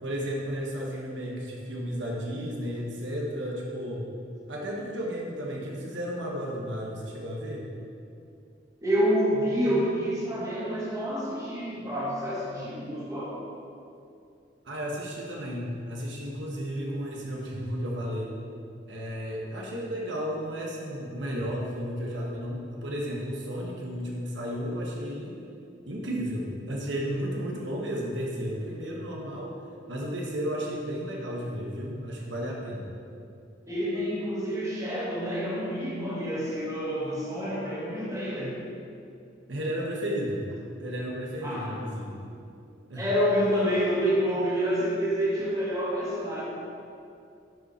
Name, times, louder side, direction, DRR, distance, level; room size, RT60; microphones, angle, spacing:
voice 1, 0.0-4.0 4.5-7.6 14.6-18.3 18.9-25.3 25.9-29.5 29.9-32.9 39.5-40.4 40.8-42.3 42.9-43.0, equal, 75° right, -2 dB, 1.3 m, -33 dB
voice 2, 8.8-13.4 33.7-38.6 41.4-41.8 43.0-46.4, equal, 20° right, -6 dB, 2.0 m, -28 dB
12.0 x 5.5 x 4.4 m, 2.5 s
head